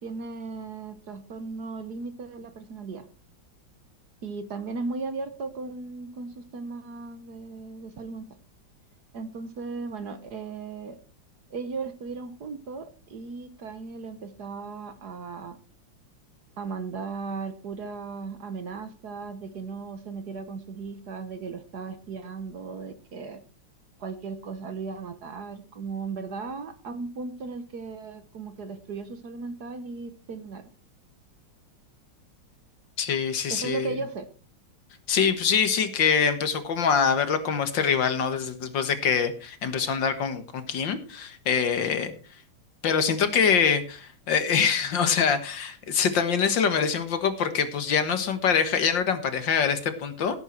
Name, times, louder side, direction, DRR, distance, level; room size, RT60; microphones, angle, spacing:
voice 1, 0.0-3.1 4.2-8.3 9.1-11.0 11.5-15.6 16.6-23.4 24.0-30.6 33.5-34.3, right 4 dB, 55° right, 10 dB, 1.6 m, -36 dB
voice 2, 33.0-33.9 35.1-42.1 42.8-50.4, left 6 dB, 65° left, 10 dB, 2.0 m, -24 dB
16.5 x 8.7 x 4.4 m, 0.37 s
omnidirectional pair, 2.3 m